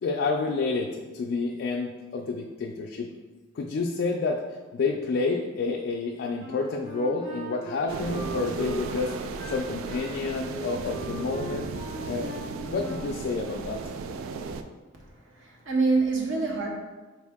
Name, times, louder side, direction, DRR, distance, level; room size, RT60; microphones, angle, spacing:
voice 1, 0.0-3.1 3.6-4.4 4.7-9.1 9.5-11.7 12.1-12.4 12.6-13.8, left 4 dB, 60° left, 1 dB, 0.3 m, -29 dB
Wind instrument woodwind instrument, 6.4-13.2, equal, 40° right, 1.4 m, -40 dB
sound 1, 7.9-14.6, right 4 dB, 90° right, 0.3 m, -35 dB
voice 2, 15.3-16.7, right 3 dB, 70° right, -1 dB, 0.9 m, -25 dB
4.4 x 2.7 x 3.5 m, 1.3 s
head